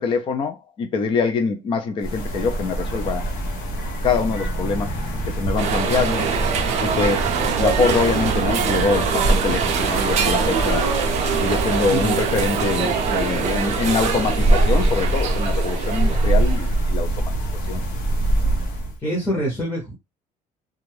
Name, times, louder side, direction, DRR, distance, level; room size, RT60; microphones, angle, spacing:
voice 1, 0.0-3.2 4.0-6.3 6.8-10.9 11.4-17.1 17.7-17.8, left 5 dB, 35° left, 0.5 m, -24 dB
sound 1, 2.0-19.0, right 1 dB, 75° left, 1.0 m, -24 dB
sound 2, 5.6-16.8, right 6 dB, 50° right, 0.5 m, -24 dB
voice 2, 19.0-19.9, right 1 dB, 15° left, 0.9 m, -25 dB
2.6 x 2.3 x 3.2 m
cardioid pair, 165°, 15 cm